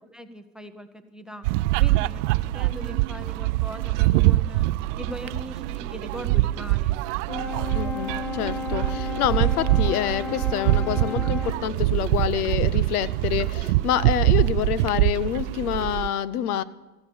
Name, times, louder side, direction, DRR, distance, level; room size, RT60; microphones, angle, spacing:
voice 1, 0.0-1.5 1.8-4.7 5.0-7.0, equal, ahead, 11 dB, 0.7 m, -40 dB
sound 1, 1.4-16.1, right 18 dB, 55° right, 0.5 m, -24 dB
Brass instrument, 7.3-11.7, left 7 dB, 45° left, 1.2 m, -33 dB
voice 2, 7.7-16.6, left 11 dB, 85° left, 18 dB, 0.9 m, -27 dB
sound 2, 9.4-15.7, left 1 dB, 15° left, 3.3 m, -46 dB
15.5 x 12.0 x 6.9 m, 1.2 s
supercardioid pair, 135°, 44 cm